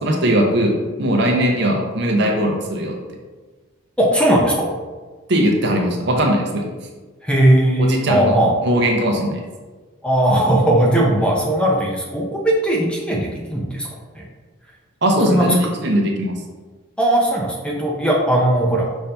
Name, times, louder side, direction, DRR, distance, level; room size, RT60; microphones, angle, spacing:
voice 1, 0.0-3.0 5.3-6.7 7.8-8.4 8.6-9.4 15.0-16.4, equal, 55° right, 1 dB, 0.7 m, -19 dB
voice 2, 4.0-4.7 7.2-8.5 10.0-13.9 14.1-14.2 15.3-15.4 17.0-18.9, right 1 dB, 5° left, -3 dB, 0.5 m, -18 dB
5.5 x 2.7 x 3.3 m, 1.4 s
head